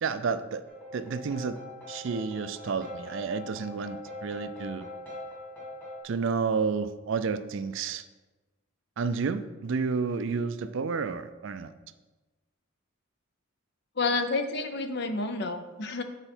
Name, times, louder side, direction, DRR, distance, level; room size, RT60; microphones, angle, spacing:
voice 1, 0.0-0.6 0.9-1.6 1.9-4.9 6.0-8.0 9.0-11.7, right 5 dB, 60° right, 12 dB, 0.4 m, -30 dB
sound 1, 0.7-6.0, left 1 dB, 10° left, 1.9 m, -42 dB
voice 2, 14.0-16.0, left 3 dB, 50° left, 8 dB, 0.6 m, -29 dB
8.9 x 4.4 x 4.4 m, 1.2 s
head